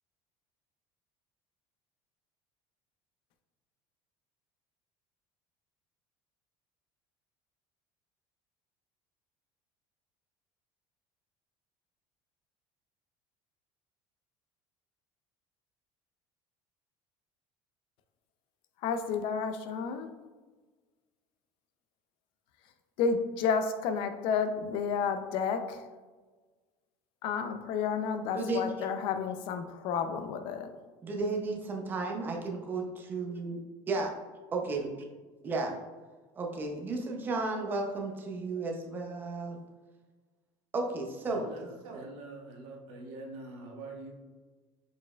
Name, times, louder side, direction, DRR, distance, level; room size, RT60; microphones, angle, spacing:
voice 1, 18.8-20.1 23.0-25.8 27.2-30.7, left 6 dB, 55° left, 8 dB, 0.4 m, -31 dB
voice 2, 28.3-28.9 31.0-33.6 33.9-34.1 34.5-34.9 35.4-35.8 36.4-39.6 40.7-41.5, right 3 dB, 20° right, 2 dB, 0.5 m, -33 dB
voice 3, 41.3-44.1, right 2 dB, 65° right, 1 dB, 0.9 m, -44 dB
4.8 x 4.2 x 2.2 m, 1.3 s
cardioid pair, 170°, 10 cm